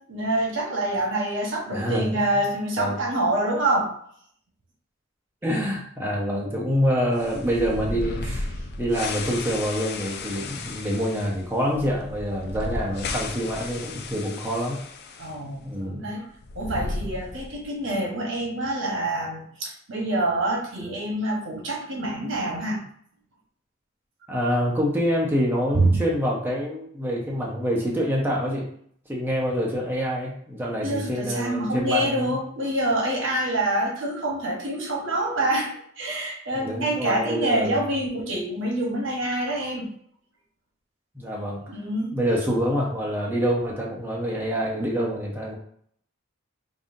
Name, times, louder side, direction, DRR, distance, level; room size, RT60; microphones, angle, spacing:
voice 1, 0.1-3.9 8.2-8.4 15.2-16.3 16.5-22.8 25.7-26.0 30.8-39.9 41.7-42.2, right 1 dB, 70° right, -1 dB, 1.1 m, -26 dB
voice 2, 1.7-2.2 2.8-3.0 5.4-8.2 8.8-14.8 15.6-16.0 24.3-28.7 29.1-32.4 36.6-37.7 41.1-41.6 42.1-45.5, equal, 10° right, -3 dB, 0.7 m, -26 dB
sound 1, 7.2-15.4 15.6-15.7 16.3-17.7, left 3 dB, 50° left, 0.4 m, -34 dB
5.4 x 2.6 x 2.6 m, 0.64 s
head